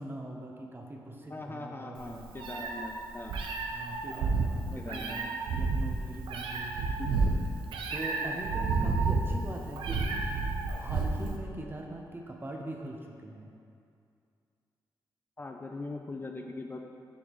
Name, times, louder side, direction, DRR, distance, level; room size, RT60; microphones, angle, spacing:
voice 1, 0.0-2.4 3.7-7.0 7.9-10.3 10.8-13.5, right 1 dB, 25° right, 0 dB, 0.9 m, -42 dB
voice 2, 1.3-3.3 4.8-5.2 7.0-7.1 8.8-8.9 15.4-16.8, left 2 dB, 25° left, 3 dB, 0.4 m, -41 dB
Meow, 2.0-11.4, right 4 dB, 85° right, 0.5 m, -31 dB
7.0 x 5.0 x 3.1 m, 2.4 s
supercardioid pair, 55°, 9 cm